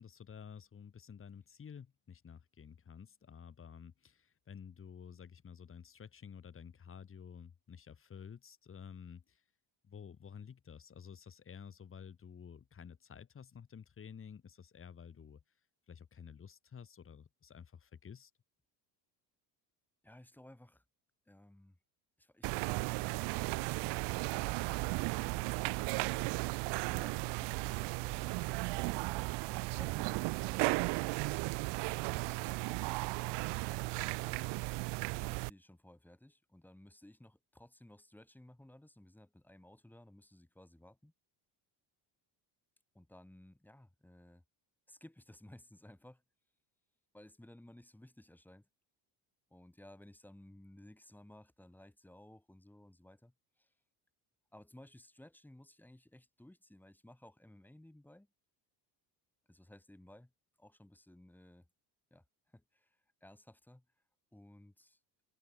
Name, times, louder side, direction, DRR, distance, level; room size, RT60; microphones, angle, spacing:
voice 1, 0.0-9.4 9.8-15.4 15.9-18.3, left 7 dB, 30° left, 5.7 m, -52 dB
voice 2, 20.0-20.8 21.3-21.8 22.2-26.5 26.9-28.6 29.5-30.7 32.1-34.5 35.0-41.1 42.9-44.4 44.9-46.2 47.1-48.7 49.5-53.7 54.5-58.3 59.5-60.3 60.6-61.7 62.1-63.9 64.3-65.0, left 1 dB, 5° left, 7.8 m, -58 dB
sound 1, 22.4-35.5, right 26 dB, 70° right, 0.6 m, -35 dB
cardioid pair, 150°, 43 cm